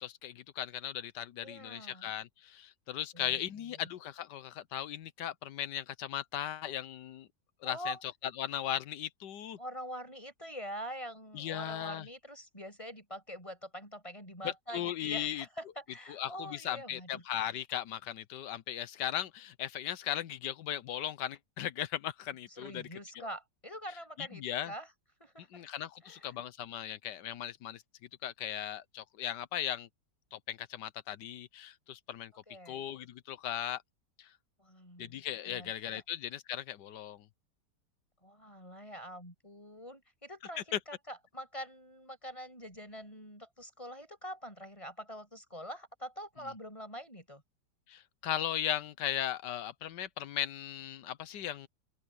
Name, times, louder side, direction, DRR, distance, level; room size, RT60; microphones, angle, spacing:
voice 1, 0.0-7.3 7.6-7.9 8.4-9.6 11.3-12.1 14.4-15.4 16.1-22.8 23.2-23.3 24.2-24.7 25.5-27.8 28.2-29.9 30.3-32.3 32.7-33.8 34.2-34.3 35.0-37.3 40.7-40.8 47.9-51.7, left 11 dB, 75° left, 1.4 m, -37 dB
voice 2, 1.4-2.1 3.1-3.9 7.6-8.0 9.6-17.2 22.5-24.9 25.2-25.6 26.0-26.4 32.5-32.8 34.6-35.7 38.2-47.4, equal, 15° left, 7.5 m, -45 dB
open air
omnidirectional pair, 1.9 m